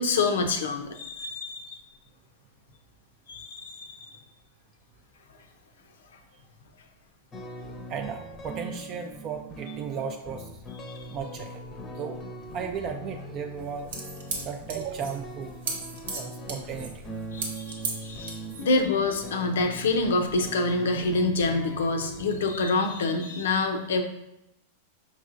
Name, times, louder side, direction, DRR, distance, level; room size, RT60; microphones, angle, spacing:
voice 1, 0.0-1.8 3.3-4.1 10.9-11.0 17.3-24.0, left 3 dB, 80° left, 6 dB, 0.5 m, -27 dB
sound 1, 7.3-22.4, right 1 dB, 25° left, 0.6 m, -41 dB
voice 2, 7.9-10.5 11.1-12.2 12.5-13.9 14.4-15.5 16.2-16.9, right 7 dB, 40° right, 4 dB, 0.3 m, -35 dB
sound 2, 13.6-18.8, right 3 dB, 80° right, 0.9 m, -36 dB
5.3 x 3.1 x 2.5 m, 0.85 s
hypercardioid pair, 110°, 0 cm